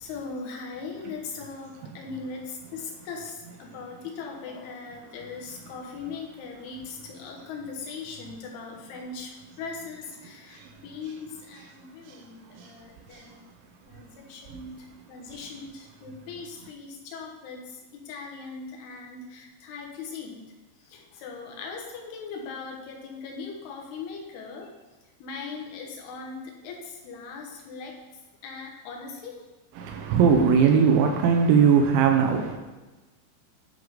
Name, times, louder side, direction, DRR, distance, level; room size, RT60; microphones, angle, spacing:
voice 1, 0.0-13.4 13.9-20.4 20.8-24.7 25.2-28.0 28.4-29.5, left 4 dB, 70° left, 0 dB, 2.8 m, -39 dB
voice 2, 29.8-32.6, right 6 dB, 80° right, 3 dB, 3.0 m, -20 dB
10.5 x 3.8 x 5.1 m, 1.2 s
omnidirectional pair, 5.5 m